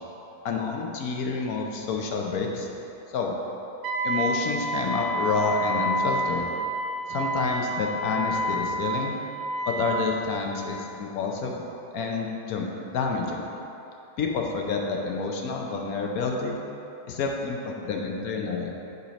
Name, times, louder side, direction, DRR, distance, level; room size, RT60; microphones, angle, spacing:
voice 1, 0.4-2.7 3.1-3.3 4.0-6.4 7.1-9.1 9.7-11.7 11.9-13.5 14.2-16.6 17.1-18.7, left 4 dB, 65° left, 1 dB, 1.1 m, -28 dB
Wind instrument woodwind instrument, 3.8-10.1, right 1 dB, 85° right, 0.5 m, -29 dB
6.9 x 4.3 x 5.2 m, 2.9 s
omnidirectional pair, 1.9 m